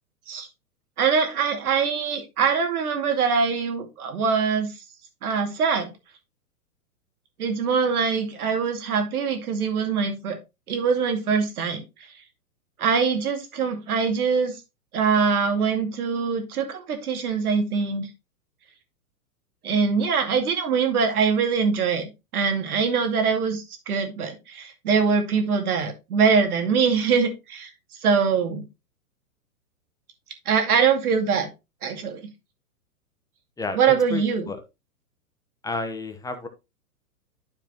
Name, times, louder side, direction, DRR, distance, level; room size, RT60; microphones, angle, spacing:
voice 1, 1.0-4.7 5.2-5.9 7.4-10.4 10.7-11.8 12.8-14.5 14.9-18.1 19.6-27.7 28.0-28.6 30.5-31.5 31.8-32.2 33.7-34.5, right 5 dB, 70° right, 5 dB, 2.5 m, -23 dB
voice 2, 34.1-34.6 35.6-36.5, left 3 dB, 5° left, 7 dB, 1.1 m, -31 dB
11.5 x 4.9 x 3.0 m, 0.25 s
hypercardioid pair, 120°, 45 cm